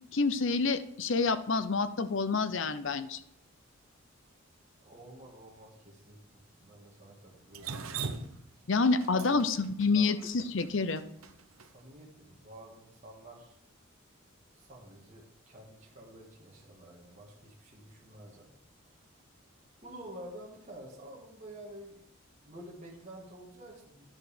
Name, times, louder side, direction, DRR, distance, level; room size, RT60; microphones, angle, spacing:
voice 1, 0.1-3.2 8.7-11.0, left 4 dB, 60° left, 12 dB, 0.7 m, -28 dB
voice 2, 4.8-7.8 9.1-9.3 9.9-10.1 11.6-13.6 14.5-18.5 18.9-19.0 19.8-22.1 22.4-24.0, right 1 dB, 35° right, -4 dB, 2.0 m, -49 dB
Drip, 7.5-11.7, right 5 dB, 80° right, 0.8 m, -40 dB
11.0 x 6.4 x 5.0 m, 0.73 s
head